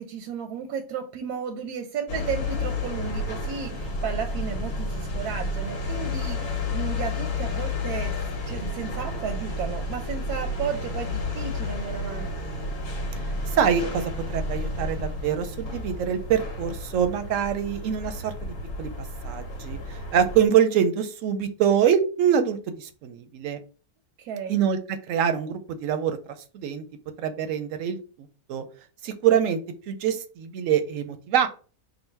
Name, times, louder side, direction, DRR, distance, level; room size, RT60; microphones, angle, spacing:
voice 1, 0.0-8.2 8.5-12.3 24.2-24.7, right 7 dB, 85° right, 5 dB, 1.1 m, -33 dB
sound 1, 2.1-20.5, left 2 dB, 80° left, 1.4 m, -31 dB
voice 2, 13.5-18.9 19.2-23.6 24.5-24.8 25.1-26.2 26.5-26.8 27.2-28.0 28.5-28.6 29.0-29.6 29.9-31.5, right 8 dB, 70° right, 9 dB, 0.8 m, -24 dB
3.8 x 2.1 x 4.4 m, 0.37 s
omnidirectional pair, 1.6 m